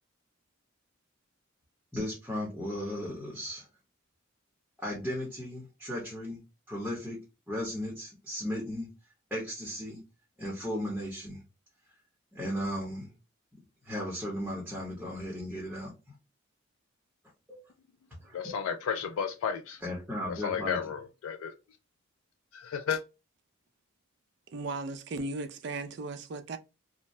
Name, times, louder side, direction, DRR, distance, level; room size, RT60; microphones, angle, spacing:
voice 1, 1.9-3.7 4.8-6.4 6.7-7.2 7.5-8.9 9.3-10.0 10.4-11.4 12.3-13.1 13.5-15.9 17.5-17.6 18.2-18.6 19.8-20.8, equal, 5° right, 0.8 m, -36 dB
voice 2, 18.3-19.8 20.3-21.5 22.5-23.0, left 7 dB, 80° left, 0.3 m, -33 dB
voice 3, 24.5-26.6, right 3 dB, 55° right, 0.4 m, -36 dB
2.6 x 2.1 x 3.0 m
head